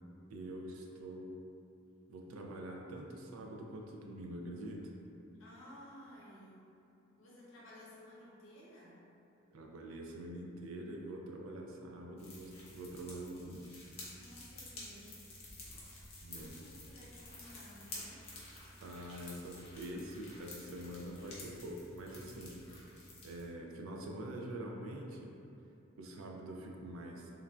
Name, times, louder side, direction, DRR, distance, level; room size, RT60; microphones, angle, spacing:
voice 1, 0.3-1.3 2.1-4.9 9.5-13.7 16.2-16.6 18.8-22.6 23.2-25.4 26.0-27.3, right 1 dB, 70° right, 0 dB, 0.3 m, -45 dB
voice 2, 5.4-6.6 7.2-9.0 14.1-15.3 15.7-16.1 16.6-18.3, left 1 dB, 65° left, -7 dB, 0.7 m, -56 dB
sound 1, 12.2-23.4, left 2 dB, 30° left, 0.5 m, -51 dB
3.1 x 2.4 x 2.2 m, 2.7 s
head